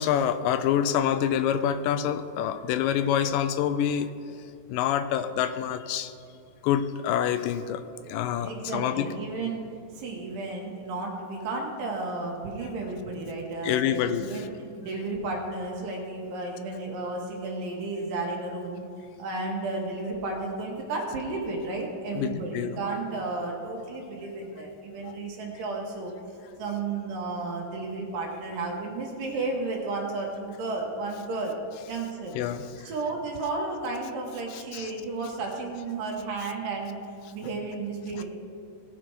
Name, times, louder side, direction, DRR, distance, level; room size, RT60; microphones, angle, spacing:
voice 1, 0.0-4.1 4.7-6.1 6.6-9.1 13.6-14.5 22.2-22.8 25.0-25.2 32.3-32.9 34.5-34.9 38.1-38.2, left 9 dB, 80° left, 10 dB, 2.1 m, -27 dB
voice 2, 8.4-9.7 9.9-14.5 14.8-18.8 19.2-26.1 26.6-31.5 31.9-32.3 32.9-37.0 37.3-38.2, right 3 dB, 75° right, -1 dB, 2.9 m, -33 dB
18.0 x 6.0 x 4.6 m, 2.4 s
omnidirectional pair, 4.0 m